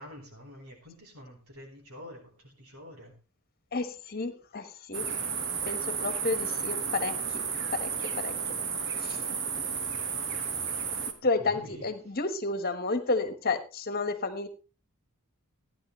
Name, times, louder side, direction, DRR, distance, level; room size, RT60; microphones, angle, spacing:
voice 1, 0.0-3.1 10.1-10.8 11.5-11.9, left 1 dB, 80° right, 2 dB, 4.0 m, -48 dB
voice 2, 3.7-5.1 5.6-7.4 7.7-8.5 9.0-9.2 11.2-14.5, left 3 dB, 45° left, 10 dB, 1.4 m, -31 dB
sound 1, 4.9-11.1, right 6 dB, 55° right, 1.4 m, -32 dB
15.0 x 10.0 x 3.2 m, 0.31 s
head